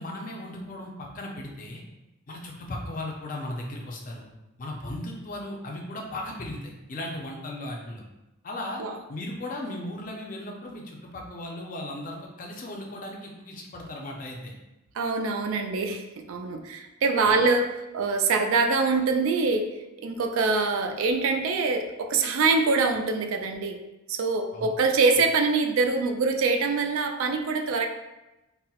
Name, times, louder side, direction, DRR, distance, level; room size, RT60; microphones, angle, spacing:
voice 1, 0.0-1.8 2.3-4.3 4.6-8.0 8.4-8.8 9.1-14.5 24.5-24.7, left 1 dB, 40° left, 0 dB, 0.4 m, -36 dB
voice 2, 14.9-19.7 20.0-23.8 24.1-27.9, right 4 dB, 70° right, 5 dB, 0.3 m, -24 dB
4.1 x 2.0 x 2.3 m, 0.97 s
head